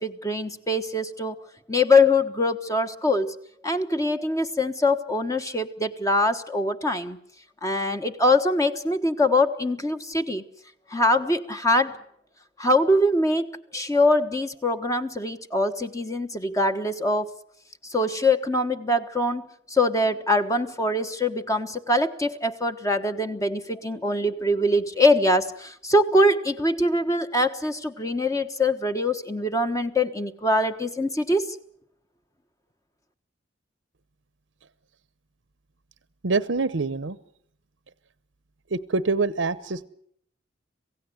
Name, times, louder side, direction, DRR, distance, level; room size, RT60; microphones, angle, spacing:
voice 1, 0.0-1.3 1.7-3.3 3.6-7.2 7.6-10.4 10.9-11.9 12.6-13.5 13.7-17.3 17.9-31.5, left 1 dB, 15° left, 7 dB, 1.2 m, -23 dB
voice 2, 36.2-37.2 38.7-39.9, right 4 dB, 75° right, 16 dB, 0.8 m, -25 dB
27.0 x 17.0 x 7.9 m, 0.67 s
head